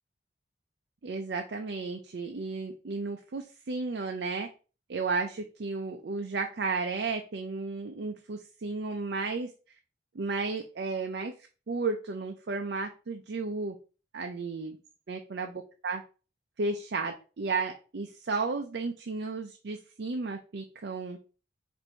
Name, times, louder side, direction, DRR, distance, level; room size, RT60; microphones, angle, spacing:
voice 1, 1.0-4.5 4.9-9.5 10.1-13.8 14.1-14.8 15.1-15.5 15.8-16.0 16.6-21.2, right 4 dB, 65° right, 4 dB, 0.5 m, -33 dB
4.5 x 2.6 x 4.3 m, 0.35 s
head